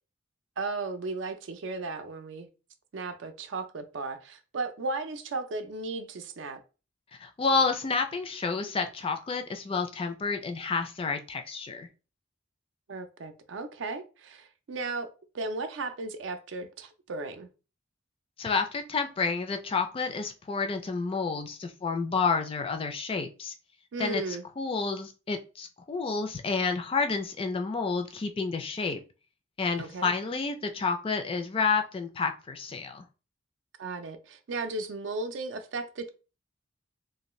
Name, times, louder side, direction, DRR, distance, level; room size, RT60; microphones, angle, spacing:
voice 1, 0.6-2.5 2.9-6.6 12.9-17.5 23.9-24.4 29.8-30.1 33.8-36.1, right 3 dB, 70° right, 0.5 m, -35 dB
voice 2, 7.2-11.9 18.4-23.5 24.0-29.0 29.6-33.0, left 4 dB, 30° left, 0.3 m, -30 dB
2.6 x 2.2 x 3.1 m
head